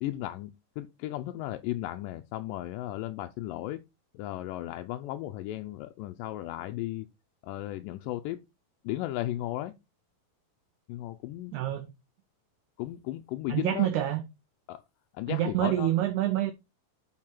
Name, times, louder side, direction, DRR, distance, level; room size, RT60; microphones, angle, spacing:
voice 1, 0.0-3.8 4.1-7.1 7.4-8.4 8.8-9.7 10.9-11.5 12.8-13.9 14.7-14.8 15.1-15.9, left 15 dB, 80° left, 2.0 m, -35 dB
voice 2, 11.5-11.9 13.5-14.2 15.3-16.5, right 13 dB, 80° right, 1.8 m, -27 dB
7.4 x 4.7 x 4.5 m
omnidirectional pair, 4.3 m